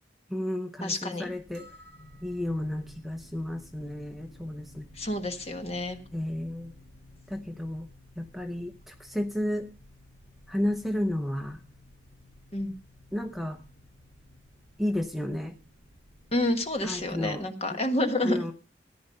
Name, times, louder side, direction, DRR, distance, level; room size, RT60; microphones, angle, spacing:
voice 1, 0.3-1.7 2.2-4.9 6.1-6.7 7.3-7.9 8.2-9.7 10.5-11.6 13.1-13.6 14.8-15.5 16.8-17.4 17.7-17.8 18.2-18.5, left 1 dB, ahead, 6 dB, 0.8 m, -32 dB
voice 2, 0.8-1.3 5.0-6.0 12.5-12.7 16.3-18.4, left 1 dB, 35° left, 7 dB, 1.5 m, -29 dB
sound 1, 1.2-17.4, left 1 dB, 50° left, 5.7 m, -54 dB
sound 2, 1.5-2.9, equal, 60° right, 4.0 m, -55 dB
14.5 x 10.0 x 5.4 m, 0.37 s
head